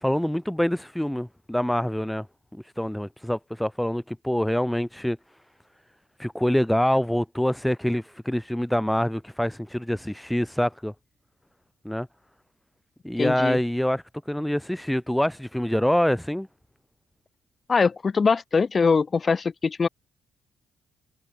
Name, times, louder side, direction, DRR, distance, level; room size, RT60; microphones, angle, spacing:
voice 1, 0.0-2.3 2.5-5.2 6.2-10.9 11.8-12.1 13.0-16.5, equal, 5° left, 0.9 m, -25 dB
voice 2, 13.2-13.6 17.7-19.9, left 5 dB, 35° left, 2.4 m, -22 dB
cardioid pair, 90°, 0 cm